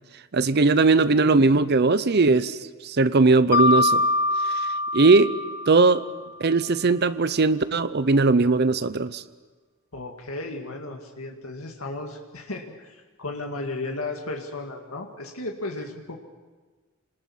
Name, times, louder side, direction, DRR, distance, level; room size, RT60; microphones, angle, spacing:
voice 1, 0.3-4.1 4.4-5.3 5.7-6.0 6.4-9.2, right 3 dB, 50° right, 14 dB, 0.7 m, -19 dB
Mallet percussion, 3.5-6.3, left 2 dB, 45° left, 0.6 m, -24 dB
voice 2, 9.9-16.2, left 2 dB, 85° left, 2 dB, 2.1 m, -34 dB
28.0 x 20.0 x 7.3 m, 1.4 s
head